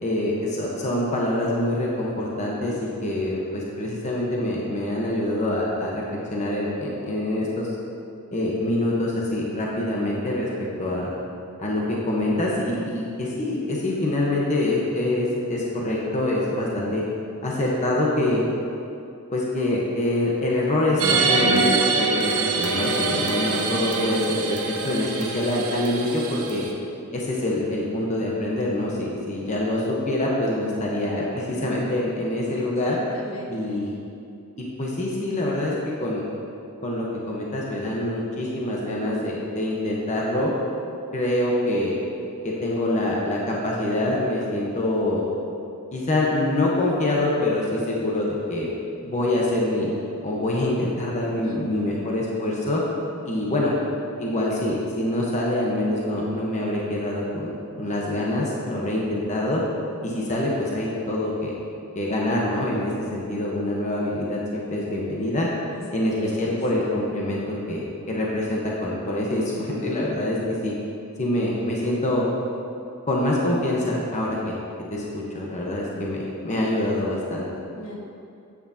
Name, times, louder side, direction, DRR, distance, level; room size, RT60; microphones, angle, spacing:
voice 1, 0.0-6.0 6.3-7.7 8.3-10.5 10.8-11.1 11.6-17.0 17.4-18.4 19.3-21.6 21.9-26.6 27.1-33.0 33.5-33.9 34.8-35.7 36.0-36.2 36.8-40.5 41.1-41.9 42.4-45.2 45.9-48.7 49.0-49.9 50.2-52.8 53.2-53.7 54.2-57.5 57.8-59.6 60.0-61.5 61.9-65.5 65.9-67.4 67.7-70.7 71.2-72.2 73.1-74.6 74.9-77.5, left 1 dB, 30° left, -4 dB, 1.1 m, -25 dB
sound 1, 21.0-26.7, right 3 dB, 75° right, 0.9 m, -24 dB
voice 2, 32.5-33.8 51.4-52.1 65.7-66.6 77.8-78.0, left 1 dB, 65° left, -2 dB, 1.4 m, -40 dB
11.0 x 8.6 x 2.9 m, 2.6 s
head